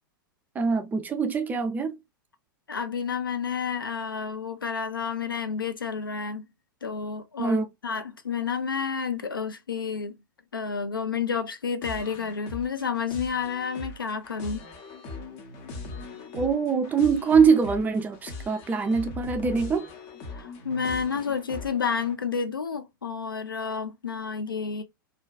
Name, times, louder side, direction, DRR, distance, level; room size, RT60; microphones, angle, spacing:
voice 1, 0.6-2.0 7.4-7.7 16.3-19.9, right 5 dB, 15° right, 0.3 m, -23 dB
voice 2, 2.7-6.5 6.8-7.6 7.8-10.2 10.5-14.7 20.3-24.8, left 6 dB, 80° left, 0.4 m, -30 dB
sound 1, 11.8-22.1, left 3 dB, 40° left, 0.7 m, -41 dB
2.5 x 2.2 x 2.2 m
figure-of-eight pair, 95°, 11 cm